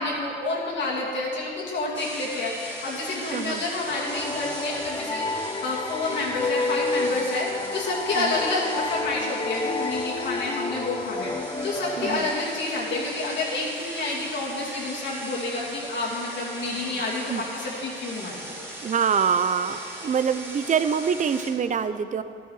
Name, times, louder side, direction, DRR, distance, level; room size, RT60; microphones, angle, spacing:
voice 1, 0.0-18.6, left 2 dB, 65° left, -6 dB, 2.7 m, -29 dB
sound 1, 1.9-21.5, right 1 dB, 10° right, 2.5 m, -39 dB
voice 2, 3.3-3.6 8.2-8.4 12.0-12.3 17.3-17.4 18.8-22.2, right 7 dB, 40° right, 12 dB, 0.5 m, -25 dB
sound 2, 3.9-13.3, left 3 dB, 20° left, 0.4 m, -30 dB
11.5 x 10.5 x 4.8 m, 2.6 s
cardioid pair, 90°, 20 cm